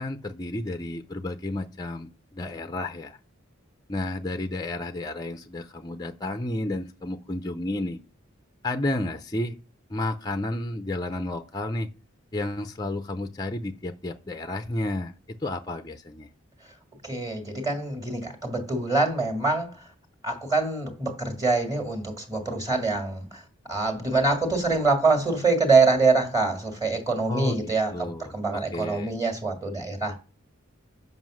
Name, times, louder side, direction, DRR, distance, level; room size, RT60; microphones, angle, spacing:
voice 1, 0.0-3.2 3.9-8.0 8.6-9.5 9.9-11.9 12.3-15.1 15.4-16.3 27.3-29.1, left 1 dB, 20° left, 0.5 m, -31 dB
voice 2, 17.0-19.7 20.2-23.3 23.7-30.2, right 3 dB, 15° right, 1.8 m, -24 dB
7.5 x 5.5 x 6.2 m
head